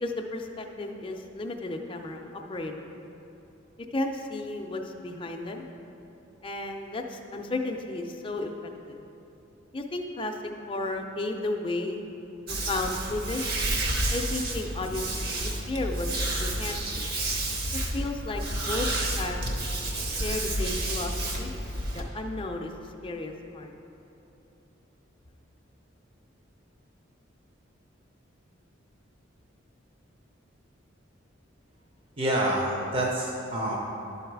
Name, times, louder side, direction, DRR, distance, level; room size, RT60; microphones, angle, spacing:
voice 1, 0.0-2.9 3.9-5.6 6.4-8.5 8.9-9.0 9.7-10.4 10.7-12.0 12.5-13.4 14.1-15.3 15.7-16.1 16.4-17.1 17.7-18.9 19.2-19.5 20.1-21.5 21.9-23.7, left 2 dB, 25° left, 3 dB, 0.4 m, -33 dB
sound 1, 12.5-22.0, right 1 dB, 50° right, 0.9 m, -30 dB
voice 2, 32.2-33.8, right 1 dB, 25° right, -3 dB, 0.6 m, -27 dB
11.5 x 4.0 x 4.6 m, 3.0 s
head